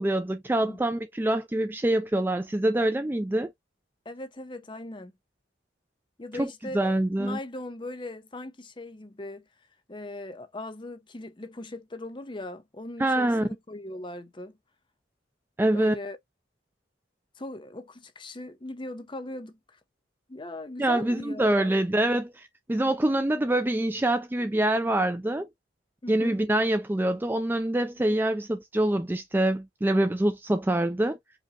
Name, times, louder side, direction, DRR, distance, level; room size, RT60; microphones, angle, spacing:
voice 1, 0.0-3.5 6.3-6.5 6.7-7.4 13.0-13.5 15.6-16.0 20.8-25.5 26.1-31.2, right 1 dB, 10° right, 0.3 m, -25 dB
voice 2, 4.1-5.1 6.2-6.8 7.2-9.5 9.9-14.6 15.7-16.2 17.4-19.8 20.3-21.8 26.0-26.4, left 2 dB, 25° left, 0.6 m, -39 dB
5.1 x 2.4 x 2.8 m
head